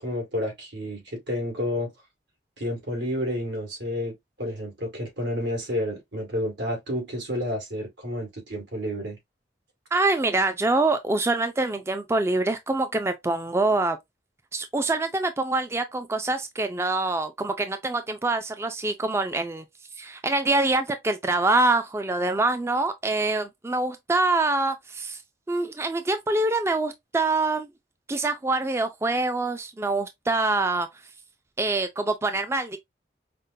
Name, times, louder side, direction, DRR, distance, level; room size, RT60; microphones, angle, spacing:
voice 1, 0.0-1.9 2.6-9.2, left 1 dB, 85° right, 2.1 m, -30 dB
voice 2, 9.9-14.0 14.5-19.6 20.0-25.2 25.5-27.7 28.1-30.9 31.6-32.8, right 2 dB, 15° right, 0.3 m, -25 dB
5.1 x 2.1 x 2.6 m
head